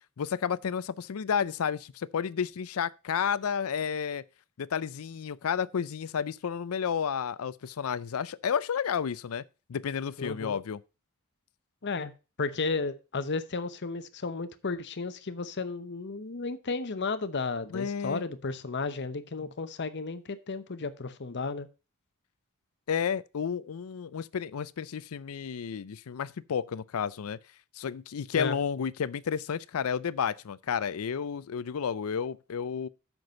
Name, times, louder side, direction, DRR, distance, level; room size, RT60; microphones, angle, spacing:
voice 1, 0.2-4.2 4.6-9.4 9.7-10.8 17.7-18.2 22.9-27.4 27.8-32.9, left 7 dB, 75° left, 0.4 m, -31 dB
voice 2, 10.2-10.6 11.8-12.1 12.4-21.7 28.3-28.6, left 4 dB, 55° left, 0.8 m, -33 dB
7.8 x 6.0 x 5.2 m
head